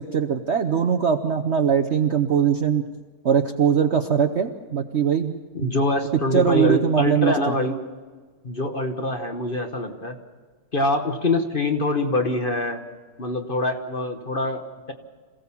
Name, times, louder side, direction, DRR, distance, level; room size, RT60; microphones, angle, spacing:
voice 1, 0.0-2.8 3.2-5.3 5.6-5.7 6.3-7.5, right 7 dB, 50° right, 4 dB, 0.8 m, -21 dB
voice 2, 5.5-7.8 8.4-10.2 10.7-12.8 13.2-14.9, left 2 dB, 35° left, 5 dB, 1.2 m, -24 dB
26.5 x 16.5 x 7.1 m, 1.4 s
omnidirectional pair, 1.9 m